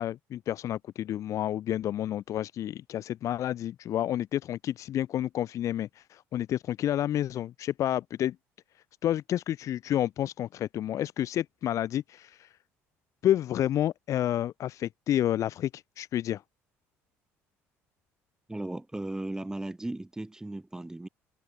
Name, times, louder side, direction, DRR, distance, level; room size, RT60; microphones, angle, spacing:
voice 1, 0.0-8.4 9.0-12.5 13.2-16.4, left 12 dB, 60° left, 2.1 m, -30 dB
voice 2, 18.5-21.1, right 2 dB, 10° right, 3.0 m, -36 dB
supercardioid pair, 85°, 6 cm